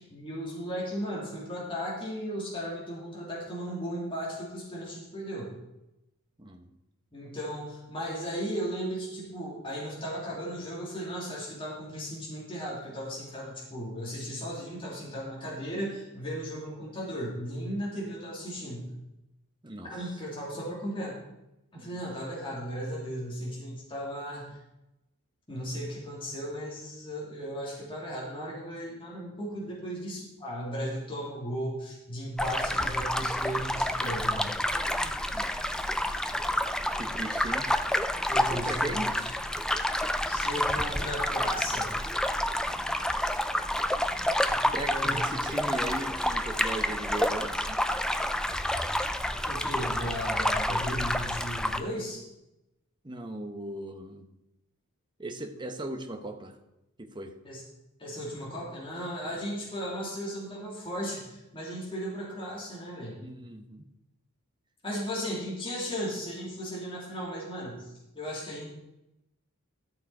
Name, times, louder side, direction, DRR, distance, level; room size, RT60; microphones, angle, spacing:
voice 1, 0.0-5.5 7.1-18.9 19.8-21.2 21.7-24.5 25.5-34.5 38.3-39.3 40.3-41.9 44.5-45.7 49.5-52.2 57.4-57.6 58.0-63.2 64.8-67.9 68.1-68.7, equal, 25° left, -5 dB, 2.9 m, -36 dB
voice 2, 6.4-6.7 19.6-19.9 21.7-22.0 35.3-36.2 37.0-37.7 38.5-39.1 42.7-43.5 44.7-47.8 50.7-51.1 53.0-54.3 55.2-56.5 57.0-57.3 63.2-63.8, right 1 dB, 20° right, 4 dB, 0.9 m, -38 dB
sound 1, 32.4-51.8, left 1 dB, 5° left, 0.4 m, -29 dB
13.5 x 6.9 x 4.8 m, 0.91 s
head